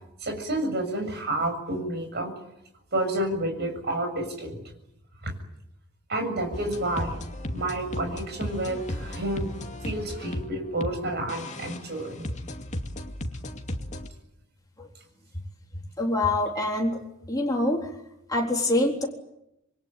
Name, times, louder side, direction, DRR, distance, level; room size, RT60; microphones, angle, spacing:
voice 1, 0.2-2.3 2.9-4.6 5.2-5.3 6.1-7.2 7.5-9.5 9.8-12.3, right 1 dB, 50° right, 5 dB, 7.2 m, -30 dB
sound 1, 6.5-10.9 11.3-14.1, left 1 dB, 35° left, 2.4 m, -35 dB
voice 2, 16.0-17.0 17.3-17.9 18.3-19.1, left 1 dB, 20° left, -1 dB, 3.9 m, -25 dB
27.5 x 22.5 x 9.2 m, 0.85 s
head